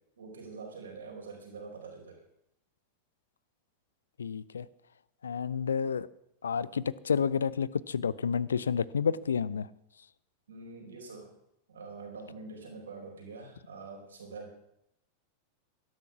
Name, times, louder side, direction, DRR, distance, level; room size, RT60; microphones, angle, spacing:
voice 1, 0.2-2.2 10.5-11.3 11.7-14.6, right 4 dB, 70° right, 1 dB, 4.7 m, -45 dB
voice 2, 4.2-4.7 5.2-6.1 6.4-9.7, left 6 dB, 70° left, 21 dB, 0.5 m, -30 dB
12.5 x 12.0 x 5.9 m, 0.78 s
figure-of-eight pair, 90°, 0 cm